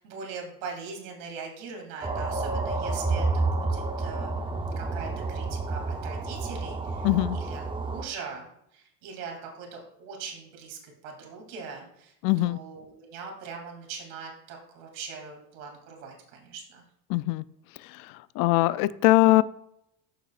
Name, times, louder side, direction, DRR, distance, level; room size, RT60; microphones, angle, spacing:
voice 1, 0.0-7.1 7.3-8.5 8.7-16.8, right 5 dB, 85° right, 1 dB, 2.8 m, -41 dB
sound 1, 2.0-8.0, right 3 dB, 15° right, 0.7 m, -30 dB
voice 2, 7.0-7.4 12.2-12.6 17.1-17.4 18.0-18.1 18.4-19.4, left 18 dB, 60° left, 16 dB, 0.5 m, -21 dB
13.5 x 6.6 x 2.4 m, 0.76 s
supercardioid pair, 110°, 38 cm